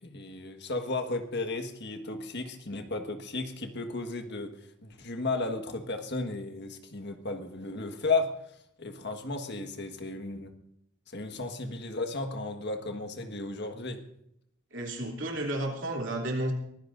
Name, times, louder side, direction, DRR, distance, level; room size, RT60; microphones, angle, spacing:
voice 1, 0.0-4.5 4.8-8.3 8.8-10.5 11.1-14.0, left 3 dB, 50° left, 6 dB, 1.5 m, -34 dB
voice 2, 14.7-16.5, right 1 dB, 55° right, 1 dB, 3.0 m, -32 dB
23.0 x 15.5 x 2.6 m, 0.76 s
head